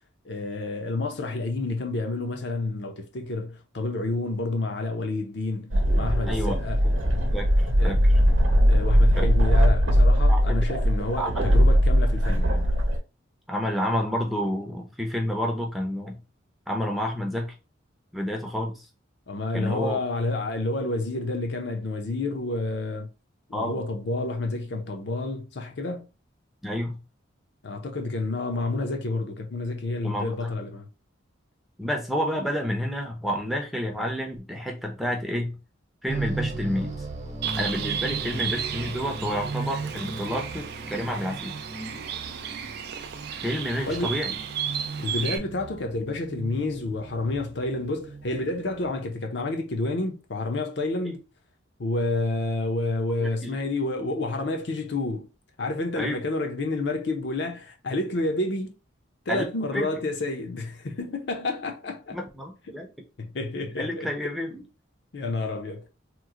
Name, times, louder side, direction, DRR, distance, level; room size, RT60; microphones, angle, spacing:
voice 1, 0.2-6.8 7.8-8.0 8.7-12.7 19.3-23.1 23.5-26.1 27.6-30.9 43.8-44.2 45.0-51.2 51.8-55.3 55.6-58.7 59.3-62.2 62.7-62.8 63.2-64.3 65.1-65.9, left 2 dB, 55° left, 0.6 m, -29 dB
sound 1, 5.7-13.0, equal, 70° right, 0.8 m, -20 dB
voice 2, 7.3-8.0 10.3-10.6 11.2-11.3 13.5-16.2 16.7-17.5 18.1-18.9 19.5-20.0 23.5-23.8 26.6-27.0 30.0-30.5 31.8-35.6 36.0-37.1 37.6-41.5 43.4-44.3 51.0-51.2 53.2-53.6 56.0-56.2 59.3-59.4 59.7-59.9 62.1-62.9 63.4-64.6, equal, ahead, 0.5 m, -29 dB
sound 2, 36.1-48.9, right 3 dB, 35° right, 0.9 m, -37 dB
Bird, 37.4-45.4, right 8 dB, 50° right, 0.3 m, -34 dB
3.0 x 2.1 x 3.7 m
head